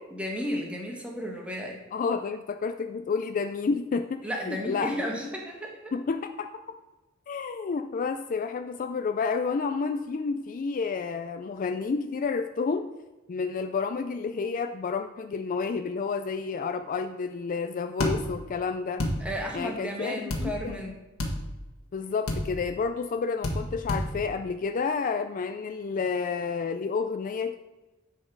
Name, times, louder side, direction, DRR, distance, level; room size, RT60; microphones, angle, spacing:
voice 1, 0.1-1.8 4.2-5.9 19.2-21.0, equal, 5° right, -1 dB, 1.3 m, -33 dB
voice 2, 1.9-5.0 5.9-6.8 7.3-12.9 13.3-19.0 19.5-20.8 21.9-27.6, left 5 dB, 40° left, 7 dB, 0.3 m, -30 dB
sound 1, 18.0-18.1 19.0-19.1 20.3-20.4 21.2-21.4 22.3-22.4 23.4-23.6 23.9-24.0, left 1 dB, 85° left, 1.5 m, -27 dB
10.0 x 4.3 x 4.6 m, 1.1 s
head